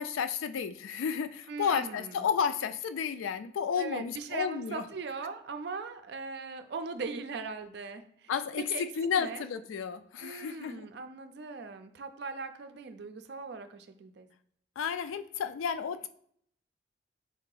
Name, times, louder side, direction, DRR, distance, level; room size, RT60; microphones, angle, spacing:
voice 1, 0.0-4.8 8.3-10.9 14.8-16.1, left 7 dB, 90° left, 11 dB, 0.3 m, -32 dB
voice 2, 1.5-2.3 3.8-8.3 8.7-8.8 9.2-9.5 10.2-14.3, right 4 dB, 55° right, 8 dB, 0.4 m, -40 dB
4.3 x 2.7 x 3.9 m, 0.66 s
head